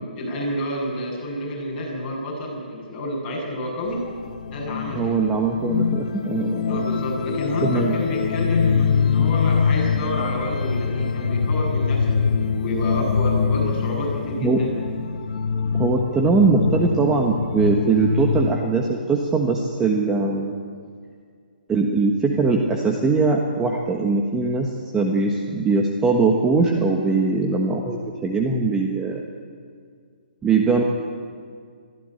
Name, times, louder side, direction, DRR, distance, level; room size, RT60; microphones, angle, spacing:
voice 1, 0.2-4.0 4.5-5.2 6.7-12.2 12.6-14.7, equal, 20° left, -4 dB, 7.8 m, -29 dB
sound 1, 3.9-18.5, left 6 dB, 55° left, 1.5 m, -24 dB
voice 2, 4.9-6.8 7.6-8.0 14.4-14.6 15.7-20.5 21.7-29.2 30.4-30.8, right 4 dB, 10° right, 1 dB, 1.4 m, -21 dB
22.5 x 14.5 x 8.1 m, 2.1 s
hypercardioid pair, 150°, 5 cm